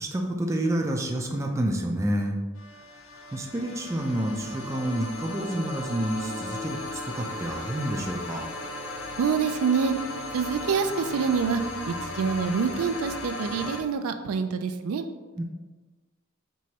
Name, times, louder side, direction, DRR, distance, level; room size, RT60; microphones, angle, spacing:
voice 1, 0.0-2.4 3.3-8.5 15.4-15.5, right 1 dB, 15° right, 1 dB, 0.4 m, -29 dB
sound 1, 2.6-13.8, left 1 dB, 85° left, 0.6 m, -36 dB
voice 2, 9.2-10.1 10.3-15.1, right 6 dB, 85° right, 8 dB, 0.3 m, -26 dB
4.6 x 3.0 x 2.8 m, 1.3 s
head